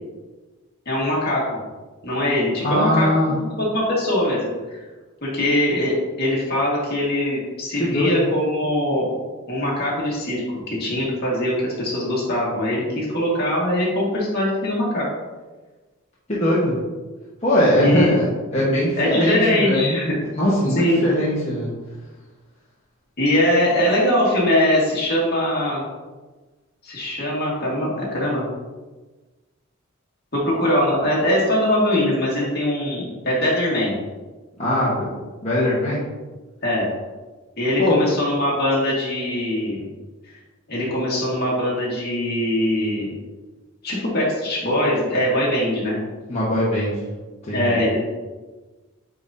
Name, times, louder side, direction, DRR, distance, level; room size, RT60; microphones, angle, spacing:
voice 1, 0.9-1.6 2.0-4.8 5.2-9.1 9.5-15.0 17.8-18.2 19.0-20.2 20.8-21.0 23.2-25.9 26.8-28.5 30.3-33.9 36.6-36.9 37.6-39.9 40.7-43.1 43.8-46.0 47.5-48.0, left 1 dB, 50° left, -5 dB, 2.0 m, -22 dB
voice 2, 2.6-3.3 7.8-8.3 16.3-16.8 17.4-21.7 34.6-35.1 35.4-36.0 37.8-38.0 46.3-47.1 47.4-47.8, left 1 dB, 30° left, -9 dB, 1.3 m, -21 dB
9.2 x 3.7 x 2.8 m, 1.2 s
head